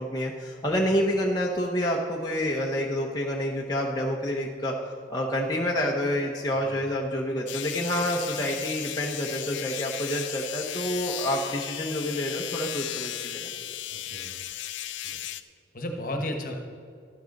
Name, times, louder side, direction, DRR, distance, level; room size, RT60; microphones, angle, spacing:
voice 1, 0.0-13.5, equal, 20° left, -2 dB, 0.8 m, -28 dB
sound 1, 7.5-15.4, left 12 dB, 80° left, 0.5 m, -35 dB
voice 2, 13.9-14.4 15.0-15.2 15.7-16.5, left 1 dB, 45° left, 4 dB, 1.3 m, -34 dB
12.5 x 9.2 x 5.2 m, 2.3 s
head